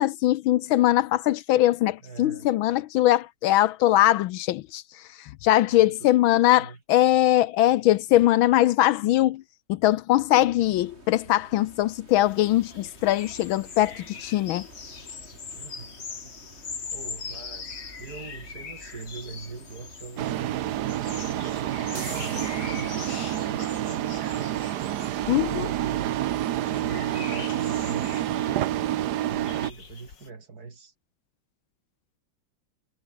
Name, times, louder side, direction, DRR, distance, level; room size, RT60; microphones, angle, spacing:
voice 1, 0.0-9.4 9.7-14.7 25.3-25.7, left 14 dB, 80° left, 1.4 m, -21 dB
voice 2, 2.0-2.5 5.6-6.8 10.4-10.8 15.5-16.0 16.9-20.5 21.2-24.6 25.2-26.1 26.7-28.7 29.2-30.9, right 4 dB, 45° right, 3.1 m, -42 dB
sound 1, 10.6-22.9, right 2 dB, 30° right, 6.2 m, -50 dB
sound 2, 12.1-30.3, left 5 dB, 55° left, 3.1 m, -42 dB
sound 3, 20.2-29.7, right 12 dB, 65° right, 1.1 m, -28 dB
omnidirectional pair, 2.4 m